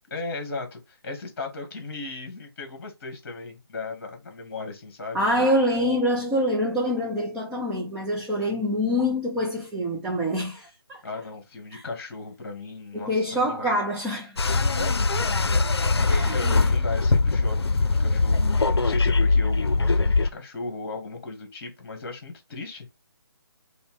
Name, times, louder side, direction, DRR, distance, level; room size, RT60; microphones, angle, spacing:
voice 1, 0.1-5.2 11.0-13.7 14.8-15.4 16.0-22.9, left 3 dB, 35° left, 1.9 m, -36 dB
voice 2, 5.1-11.0 11.7-11.8 12.9-14.6 16.1-16.7, equal, 5° right, 0.5 m, -26 dB
sound 1, 14.4-20.3, left 3 dB, 80° left, 0.6 m, -22 dB
5.2 x 2.2 x 4.7 m
figure-of-eight pair, 155°, 13 cm